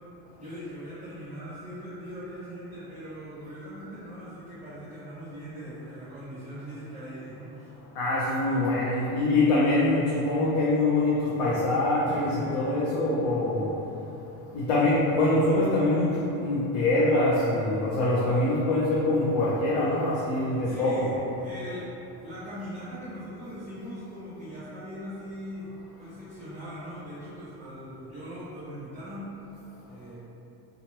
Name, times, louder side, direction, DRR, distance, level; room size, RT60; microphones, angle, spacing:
voice 1, 0.4-7.7 20.6-21.9 22.2-29.3 29.9-30.1, equal, 15° right, -11 dB, 0.7 m, -40 dB
voice 2, 7.9-13.7 14.5-21.1, left 2 dB, 65° left, -7 dB, 0.7 m, -24 dB
Acoustic guitar / Strum, 12.1-15.5, left 1 dB, 25° left, 0.5 m, -44 dB
2.9 x 2.4 x 2.8 m, 2.9 s
supercardioid pair, 105°, 44 cm